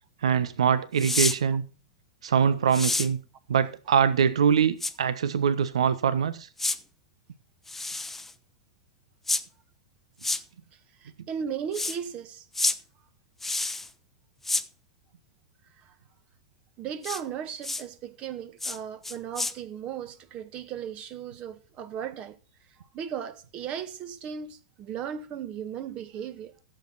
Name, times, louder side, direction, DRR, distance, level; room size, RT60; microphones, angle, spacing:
voice 1, 0.2-1.6 2.2-3.2 3.5-6.5, right 7 dB, 75° right, 1.1 m, -23 dB
sound 1, 1.0-1.4 2.7-3.1 4.8-4.9 6.6-6.8 7.7-8.3 9.3-9.4 10.2-10.4 11.7-12.0 12.5-12.8 13.4-13.9 14.4-14.6 17.0-17.2 17.6-17.8 18.6-18.8 19.0-19.5, left 2 dB, 5° left, 0.9 m, -28 dB
voice 2, 11.0-12.5 15.8-15.9 16.8-22.4 22.9-26.6, right 8 dB, 35° right, 1.7 m, -36 dB
15.5 x 7.9 x 4.1 m
hypercardioid pair, 105°, 3 cm